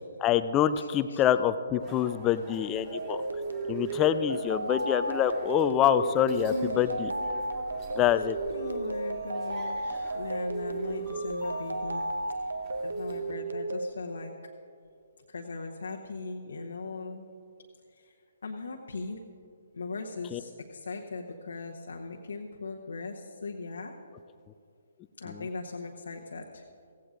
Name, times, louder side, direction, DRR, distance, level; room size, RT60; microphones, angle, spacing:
voice 1, 0.2-3.2 3.7-7.1 8.0-8.4 20.3-20.4 25.3-25.5, left 10 dB, 20° left, 12 dB, 0.5 m, -26 dB
voice 2, 0.7-1.2 6.5-6.8 8.5-12.1 12.3-12.5 12.8-14.3 15.3-17.3 17.9-18.1 18.4-19.2 19.7-23.9 25.2-26.6, left 3 dB, 70° left, 1 dB, 1.0 m, -39 dB
sound 1, 1.8-13.3, right 1 dB, 30° right, 2.7 m, -46 dB
sound 2, 2.9-13.9, right 2 dB, 80° right, 0.7 m, -34 dB
16.5 x 16.0 x 2.5 m, 2.4 s
figure-of-eight pair, 135°, 0 cm